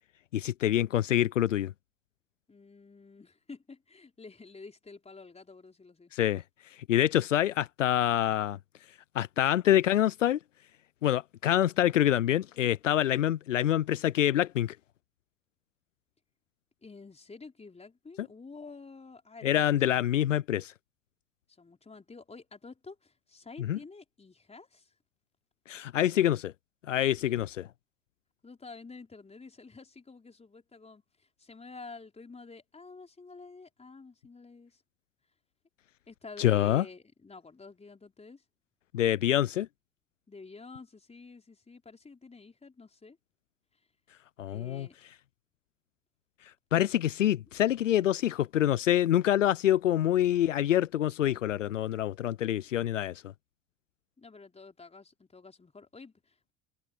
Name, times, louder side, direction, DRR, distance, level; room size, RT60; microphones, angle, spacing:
voice 1, 0.3-1.7 6.1-8.6 9.1-10.4 11.0-14.8 18.2-18.3 19.4-20.7 23.7-23.8 25.7-26.5 26.9-27.7 36.4-36.8 38.9-39.7 44.4-44.9 46.7-53.2, left 12 dB, 75° left, 0.8 m, -26 dB
voice 2, 2.5-6.1 16.8-20.0 21.5-24.9 28.4-34.8 36.1-38.4 40.3-43.2 44.5-45.0 46.8-46.9 54.2-56.5, left 4 dB, 15° left, 4.9 m, -49 dB
figure-of-eight pair, 65°, 38 cm